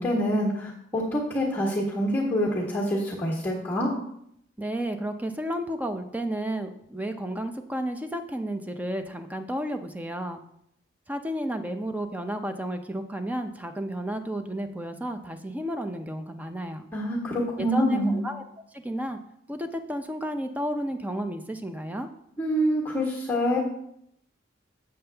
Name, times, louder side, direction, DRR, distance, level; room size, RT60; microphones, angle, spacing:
voice 1, 0.0-3.9 16.9-18.2 22.4-23.6, equal, 10° left, -4 dB, 1.5 m, -26 dB
voice 2, 4.6-10.4 11.1-16.8 17.6-18.4 18.7-19.2 19.5-22.1, equal, 10° right, 7 dB, 0.5 m, -32 dB
7.8 x 7.2 x 3.4 m, 0.74 s
head